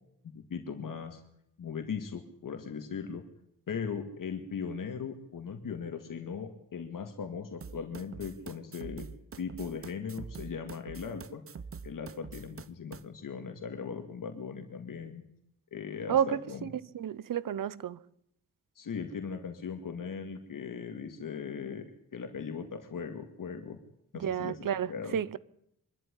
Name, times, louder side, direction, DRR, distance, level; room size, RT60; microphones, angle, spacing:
voice 1, 0.2-1.2 1.6-3.2 3.7-9.1 9.4-11.4 11.8-15.2 15.7-16.7 18.8-21.8 22.1-23.8 24.1-24.6 24.9-25.2, left 6 dB, 75° left, 2.2 m, -38 dB
sound 1, 7.6-13.0, right 5 dB, 40° right, 0.9 m, -45 dB
voice 2, 16.1-18.0 24.1-25.4, right 9 dB, 75° right, 0.9 m, -31 dB
24.5 x 12.5 x 10.0 m
wide cardioid pair, 175°, 33 cm